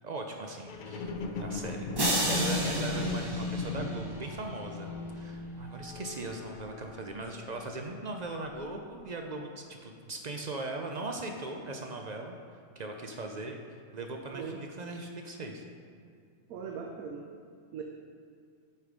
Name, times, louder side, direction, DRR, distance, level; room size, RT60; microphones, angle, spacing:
voice 1, 0.0-12.4 12.8-13.6 13.9-15.6, right 2 dB, 60° right, 3 dB, 0.4 m, -39 dB
sound 1, 0.7-8.1 8.7-8.8, left 3 dB, 65° left, 0.5 m, -36 dB
sound 2, 2.0-4.3, right 1 dB, 20° right, 0.7 m, -32 dB
voice 2, 16.5-17.3 17.7-17.8, right 6 dB, 85° right, 1 dB, 1.1 m, -39 dB
7.9 x 5.7 x 5.0 m, 2.3 s
omnidirectional pair, 1.5 m